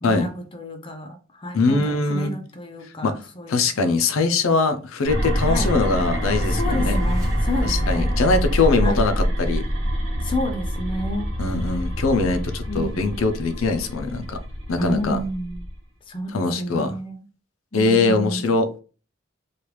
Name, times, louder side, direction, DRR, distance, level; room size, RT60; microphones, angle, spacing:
voice 1, 0.0-3.9 5.5-5.7 6.5-8.1 8.8-9.1 10.2-11.3 12.7-13.1 14.8-15.6 16.1-17.3 17.7-18.5, equal, 25° left, 0.5 m, -30 dB
voice 2, 1.5-2.3 3.0-3.2 3.5-7.0 7.6-9.6 11.4-14.4 14.7-15.2 16.3-16.9 17.7-18.8, left 3 dB, 90° left, 0.5 m, -22 dB
sound 1, 5.0-15.8, equal, 70° right, 1.2 m, -26 dB
sound 2, 6.1-10.2, right 1 dB, 15° right, 0.9 m, -31 dB
3.2 x 2.4 x 3.0 m
head